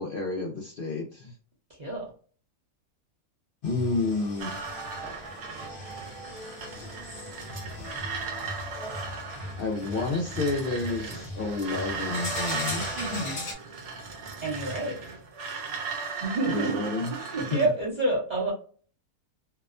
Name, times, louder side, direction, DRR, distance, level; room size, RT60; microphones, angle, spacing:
voice 1, 0.0-1.3 3.6-4.6 9.6-12.9 16.5-17.1 17.4-17.6, left 3 dB, 80° left, 0 dB, 0.4 m, -30 dB
voice 2, 1.8-2.1 12.9-13.4 14.4-15.0 16.2-18.5, right 2 dB, 35° right, -5 dB, 0.8 m, -29 dB
sound 1, 3.6-13.5, left 2 dB, 45° left, 0.9 m, -39 dB
sound 2, 4.4-17.7, right 5 dB, 80° right, 1.1 m, -37 dB
2.8 x 2.1 x 2.4 m, 0.41 s
omnidirectional pair, 1.5 m